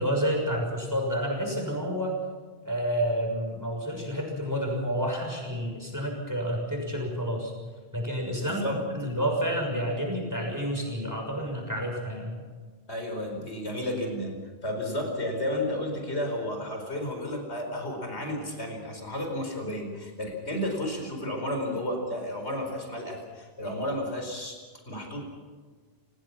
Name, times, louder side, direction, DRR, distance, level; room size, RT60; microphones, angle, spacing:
voice 1, 0.0-2.2 2.6-7.5 7.9-12.4, equal, 15° right, 0 dB, 6.3 m, -29 dB
voice 2, 8.4-8.8 12.9-24.6 24.9-25.2, left 1 dB, 80° left, 2 dB, 5.0 m, -32 dB
28.5 x 18.5 x 6.0 m, 1.5 s
omnidirectional pair, 1.1 m